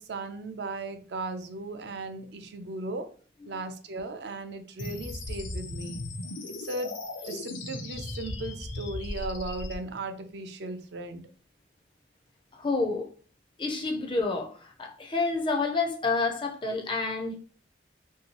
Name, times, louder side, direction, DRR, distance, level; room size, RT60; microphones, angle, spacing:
voice 1, 0.0-3.1 3.4-6.1 6.5-11.3, right 2 dB, 65° right, 0.4 m, -37 dB
sound 1, 4.8-9.7, left 2 dB, 90° left, 0.6 m, -37 dB
voice 2, 12.5-13.1 13.6-17.4, left 3 dB, 25° left, 0.4 m, -29 dB
3.0 x 2.7 x 2.9 m
head